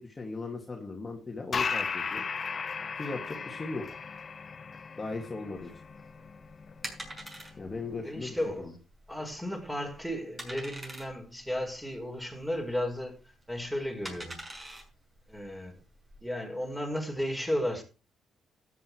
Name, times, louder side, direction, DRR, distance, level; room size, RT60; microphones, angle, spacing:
voice 1, 0.0-2.2 3.0-3.9 5.0-5.7 7.6-8.7, left 3 dB, 25° left, 2.5 m, -38 dB
sound 1, 1.5-8.5, left 5 dB, 40° left, 1.2 m, -37 dB
sound 2, 5.6-16.2, right 1 dB, 15° right, 6.0 m, -46 dB
voice 2, 8.0-8.7 9.1-14.4 15.3-15.8 16.2-17.8, equal, ahead, 5.1 m, -34 dB
13.0 x 9.4 x 4.7 m
cardioid pair, 90°, 0 cm